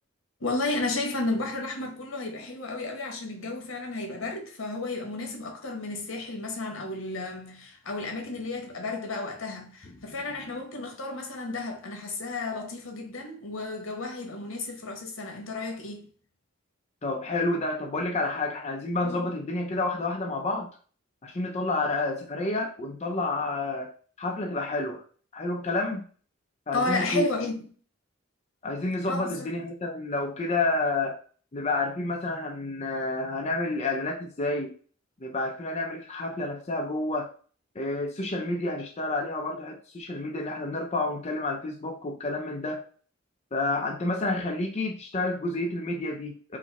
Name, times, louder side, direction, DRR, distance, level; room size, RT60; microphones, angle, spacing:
voice 1, 0.4-16.1 19.0-19.3 26.7-27.6 29.1-29.5, left 3 dB, 80° left, 1.2 m, -32 dB
voice 2, 17.0-20.7 21.2-23.9 24.2-25.0 25.3-26.0 26.7-27.3 28.6-31.2 31.5-34.7 35.2-37.3 37.8-42.8 43.5-46.6, left 2 dB, 30° left, 0.5 m, -29 dB
4.8 x 2.1 x 4.0 m
head